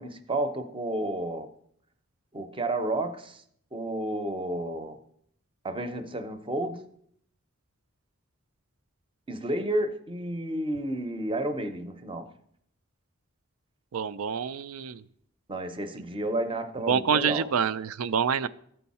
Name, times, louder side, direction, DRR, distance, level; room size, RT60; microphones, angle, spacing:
voice 1, 0.0-1.5 2.3-3.4 3.7-5.0 5.6-6.9 9.3-12.3 15.5-17.5, right 1 dB, 25° right, 0.6 m, -31 dB
voice 2, 13.9-15.0 16.9-18.5, right 7 dB, 85° right, 0.4 m, -27 dB
13.5 x 4.6 x 4.2 m
head